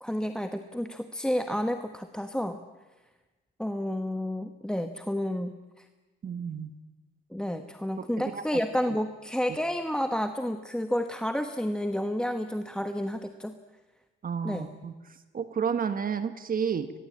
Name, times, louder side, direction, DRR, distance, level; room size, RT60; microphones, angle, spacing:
voice 1, 0.0-2.6 3.6-5.9 7.3-13.6 14.4-14.7, equal, 5° left, 8 dB, 1.1 m, -30 dB
voice 2, 6.2-6.7 8.0-8.1 8.3-8.4 14.2-14.9 15.3-16.9, right 7 dB, 45° right, 10 dB, 1.3 m, -31 dB
22.5 x 22.0 x 8.7 m, 1.2 s
cardioid pair, 90°, 20 cm